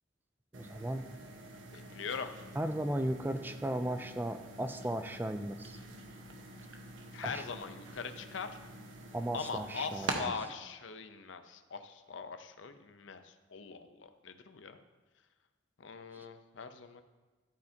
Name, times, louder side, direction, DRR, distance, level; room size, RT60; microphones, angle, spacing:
voice 1, 0.5-1.0 2.6-5.8 7.2-7.4 9.1-10.3 16.1-16.3, right 1 dB, 10° right, 9 dB, 0.3 m, -36 dB
sound 1, 0.5-10.2, right 2 dB, 85° right, 1.1 m, -46 dB
voice 2, 1.7-2.3 7.1-8.6 9.3-14.8 15.8-17.0, left 5 dB, 75° left, 9 dB, 0.6 m, -42 dB
12.0 x 8.7 x 2.8 m, 1.3 s
head